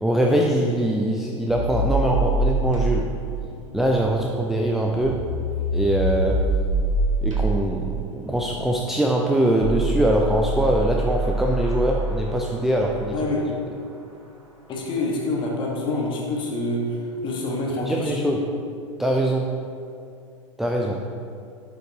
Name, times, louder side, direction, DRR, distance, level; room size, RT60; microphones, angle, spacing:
voice 1, 0.0-3.1 3.7-5.2 5.7-6.4 7.2-13.3 17.9-18.4 19.0-19.6 20.6-21.0, right 1 dB, ahead, -1 dB, 0.4 m, -22 dB
sound 1, 1.5-12.7, right 2 dB, 70° right, 1.5 m, -26 dB
voice 2, 13.1-13.4 14.7-17.0 17.2-18.4, left 2 dB, 30° left, -2 dB, 1.6 m, -26 dB
11.5 x 5.5 x 3.0 m, 2.4 s
figure-of-eight pair, 85°, 16 cm